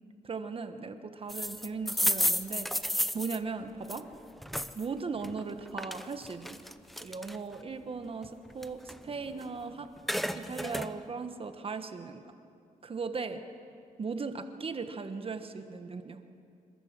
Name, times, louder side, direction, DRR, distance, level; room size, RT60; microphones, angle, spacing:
voice 1, 0.2-2.7 3.1-4.1 4.7-6.6 7.0-9.9 10.3-12.2 12.8-13.4 14.0-16.2, right 4 dB, 40° right, 8 dB, 1.3 m, -38 dB
sound 1, 1.3-4.9 5.2-7.6 8.0-9.6 9.9-10.9, equal, ahead, 0.7 m, -32 dB
26.5 x 13.0 x 7.5 m, 2.5 s
cardioid pair, 105°, 15 cm